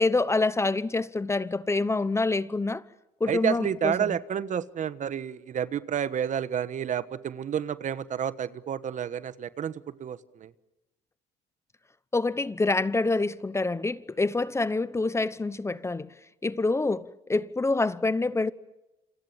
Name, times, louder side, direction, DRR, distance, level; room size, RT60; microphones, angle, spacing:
voice 1, 0.0-2.8 3.2-4.1 12.1-16.1 16.4-18.5, left 3 dB, 15° left, 0.9 m, -26 dB
voice 2, 3.3-9.7 10.0-10.5, right 8 dB, 45° right, 1.3 m, -30 dB
28.0 x 26.5 x 7.4 m
cardioid pair, 110°, 17 cm